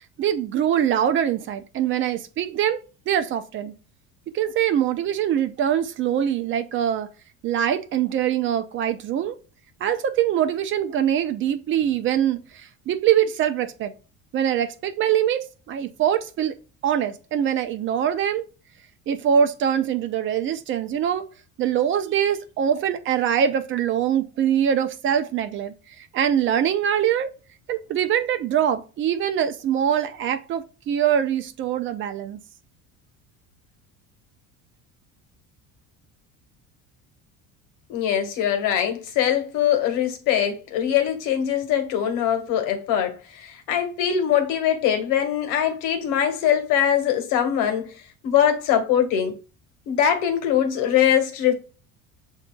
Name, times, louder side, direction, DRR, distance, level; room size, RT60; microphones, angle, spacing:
voice 1, 0.2-2.8 3.1-3.7 4.3-7.1 7.4-9.4 9.8-13.9 14.3-16.5 16.8-18.4 19.1-21.3 21.6-27.3 27.7-32.4, right 9 dB, 40° right, 0.5 m, -23 dB
voice 2, 37.9-47.9 48.2-49.4 49.9-51.5, left 9 dB, 80° left, 1.5 m, -22 dB
7.4 x 2.8 x 2.2 m
cardioid pair, 165°, 31 cm